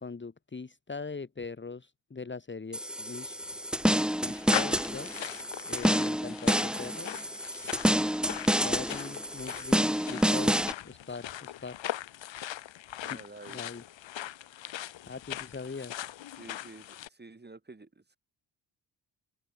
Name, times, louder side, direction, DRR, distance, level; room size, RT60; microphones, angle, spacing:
voice 1, 0.0-3.4 4.2-5.3 5.6-7.2 8.6-11.8 13.1-13.2 13.5-13.8 15.1-16.0, left 4 dB, 25° left, 2.0 m, -41 dB
sound 1, 2.7-10.7, equal, ahead, 1.9 m, -28 dB
sound 2, 3.2-17.1, left 12 dB, 75° left, 1.9 m, -40 dB
voice 2, 13.0-13.6 16.3-18.2, right 3 dB, 20° right, 6.1 m, -50 dB
open air
cardioid pair, 85°, 45 cm